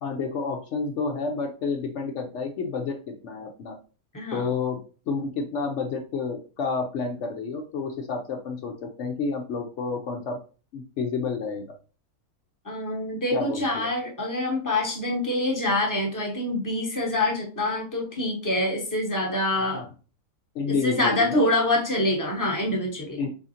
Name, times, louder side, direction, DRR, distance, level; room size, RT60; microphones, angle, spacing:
voice 1, 0.0-3.8 4.3-4.8 5.1-10.4 10.7-11.6 13.3-13.9 19.7-19.8 20.5-21.5 23.2-23.3, left 4 dB, 65° left, 3 dB, 0.7 m, -30 dB
voice 2, 4.1-4.5 12.6-19.8 20.7-23.2, left 1 dB, 15° left, 0 dB, 0.7 m, -26 dB
3.7 x 3.5 x 2.7 m, 0.36 s
omnidirectional pair, 1.6 m